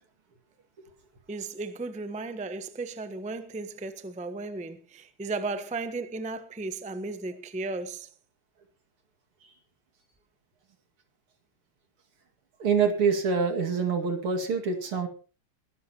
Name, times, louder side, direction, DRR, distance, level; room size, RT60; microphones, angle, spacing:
voice 1, 1.3-8.1, right 3 dB, 5° right, 0.5 m, -35 dB
voice 2, 12.6-15.1, right 5 dB, 90° right, 3.2 m, -25 dB
22.0 x 13.5 x 3.0 m
omnidirectional pair, 2.3 m